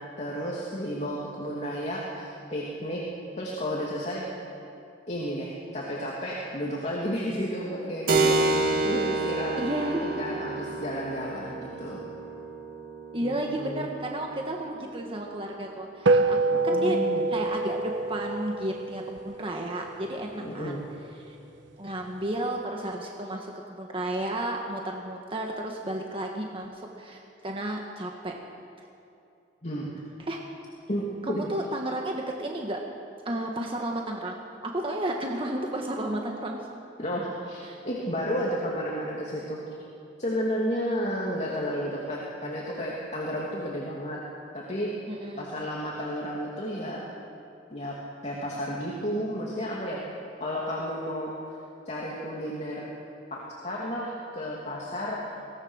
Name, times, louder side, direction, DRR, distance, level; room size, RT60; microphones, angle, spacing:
voice 1, 0.0-3.0 3.3-4.3 5.1-8.5 8.8-12.0 13.2-13.9 16.5-17.3 20.4-20.8 29.6-29.9 30.9-31.5 37.0-39.6 40.2-44.2 44.5-44.9 45.4-47.0 47.7-47.9 48.2-50.0 50.4-51.6 51.9-52.9 53.3-55.3, equal, 40° left, -4 dB, 2.7 m, -32 dB
Keyboard (musical), 8.1-16.3, right 3 dB, 55° right, 2.1 m, -30 dB
voice 2, 8.2-8.7 9.6-10.1 13.1-16.4 16.6-17.0 17.3-20.8 21.2-21.3 21.8-28.3 30.2-30.4 31.2-32.8 33.2-36.7 37.6-37.8 45.1-45.5, right 1 dB, 30° right, 0 dB, 1.6 m, -32 dB
sound 1, 16.1-20.7, right 3 dB, 85° right, 1.2 m, -27 dB
23.0 x 19.0 x 6.5 m, 2.7 s
head